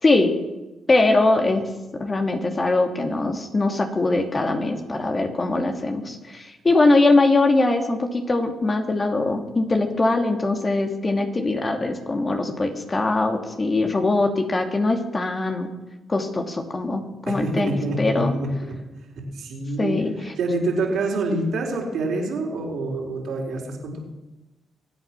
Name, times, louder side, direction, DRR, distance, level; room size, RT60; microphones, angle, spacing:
voice 1, 0.9-15.7 16.1-18.3 19.8-20.1, left 2 dB, 35° left, 4 dB, 2.6 m, -22 dB
voice 2, 17.3-18.7 19.1-24.0, right 2 dB, 70° right, -1 dB, 4.2 m, -26 dB
23.5 x 8.5 x 6.1 m, 1.1 s
hypercardioid pair, 45°, 0 cm